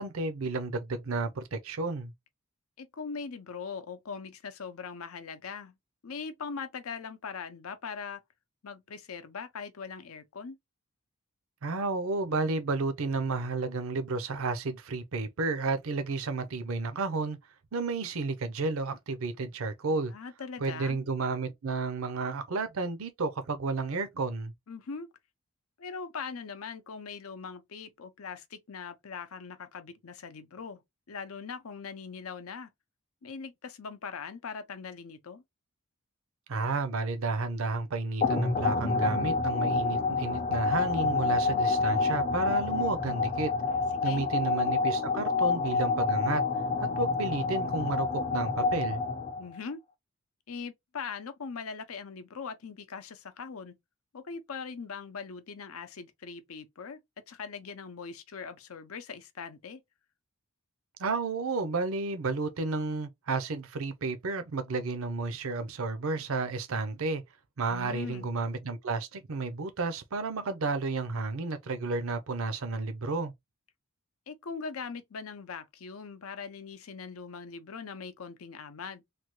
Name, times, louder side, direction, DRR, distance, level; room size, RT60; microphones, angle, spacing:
voice 1, 0.0-2.1 11.6-17.4 17.7-20.1 20.6-24.5 36.5-43.5 44.0-46.4 46.8-49.0 61.0-67.2 67.6-73.3, right 3 dB, 70° right, 0.5 m, -32 dB
voice 2, 2.8-5.7 6.0-8.2 8.6-10.6 20.1-21.0 24.7-25.1 25.8-30.8 31.1-32.7 33.2-35.4 43.7-44.2 49.4-49.8 50.5-53.8 54.1-57.0 57.3-59.8 67.7-68.3 74.3-79.0, left 5 dB, 70° left, 0.6 m, -41 dB
sound 1, 38.2-49.6, left 4 dB, 30° left, 0.5 m, -28 dB
3.3 x 2.3 x 2.9 m
head